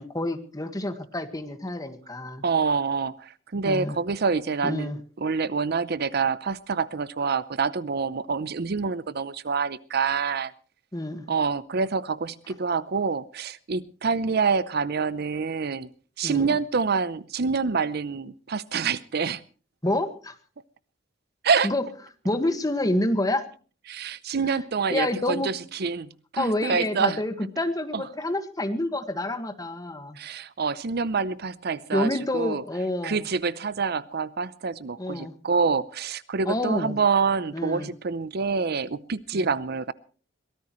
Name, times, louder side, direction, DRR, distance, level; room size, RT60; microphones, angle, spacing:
voice 1, 0.0-2.4 3.6-3.9 4.6-5.0 10.9-11.3 16.2-16.6 19.8-20.4 21.6-21.8 22.2-23.4 24.5-24.6 24.9-25.5 26.4-30.2 31.9-33.2 35.0-35.3 36.4-37.0 37.5-37.9 39.3-39.5, left 1 dB, 20° left, 8 dB, 1.6 m, -28 dB
voice 2, 2.4-10.5 11.3-15.9 16.2-19.4 21.4-21.7 23.9-27.2 27.9-28.0 30.2-32.6 33.0-39.9, right 5 dB, 55° right, 17 dB, 0.6 m, -27 dB
23.0 x 17.5 x 3.1 m, 0.39 s
head